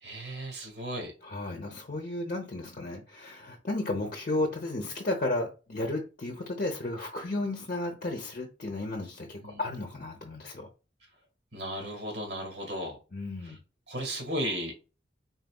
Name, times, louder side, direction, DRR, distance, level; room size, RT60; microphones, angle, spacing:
voice 1, 0.0-1.1 9.4-9.7 11.5-13.0 13.4-13.6 13.9-14.7, equal, 70° right, 1.9 m, -35 dB
voice 2, 1.2-10.7 13.1-13.6, left 2 dB, 45° left, 0.8 m, -33 dB
4.1 x 4.0 x 2.3 m
head